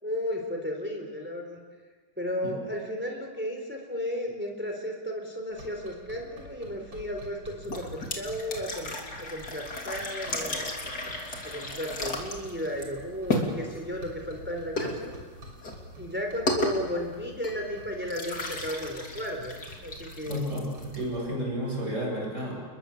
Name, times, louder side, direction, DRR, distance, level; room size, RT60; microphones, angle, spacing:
voice 1, 0.0-1.6 2.2-8.9 9.2-10.7 11.4-15.1 16.0-19.5 19.8-20.4, equal, 5° right, 2 dB, 4.0 m, -34 dB
sound 1, 5.5-21.3, right 1 dB, 75° right, 6.9 m, -49 dB
sound 2, 7.6-21.3, left 2 dB, 50° left, 3.6 m, -35 dB
voice 2, 20.3-22.6, equal, 35° right, -2 dB, 8.5 m, -32 dB
30.0 x 22.0 x 7.4 m, 1.4 s
omnidirectional pair, 2.2 m